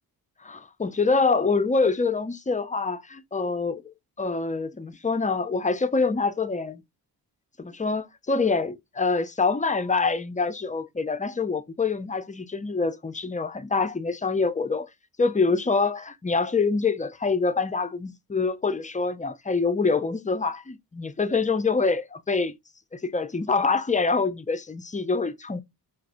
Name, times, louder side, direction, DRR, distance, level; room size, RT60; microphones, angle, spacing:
voice 1, 0.4-6.8 7.6-14.9 15.2-22.6 22.9-25.6, left 4 dB, 20° left, 0.4 m, -25 dB
4.7 x 2.5 x 2.5 m
cardioid pair, 50°, 42 cm